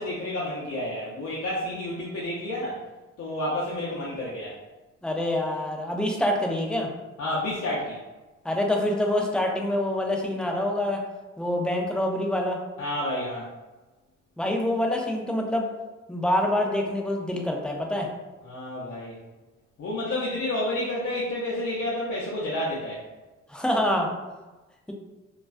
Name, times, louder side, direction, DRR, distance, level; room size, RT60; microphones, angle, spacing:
voice 1, 0.0-2.8 3.2-4.6 7.2-8.0 12.8-13.5 18.4-19.1 19.8-23.0, left 1 dB, 60° left, -7 dB, 0.6 m, -30 dB
voice 2, 5.0-6.9 8.4-11.0 11.4-12.6 14.4-15.7 16.1-18.1 23.5-24.1, left 1 dB, 5° left, 1 dB, 0.3 m, -26 dB
2.3 x 2.2 x 2.4 m, 1.1 s
cardioid pair, 90°, 30 cm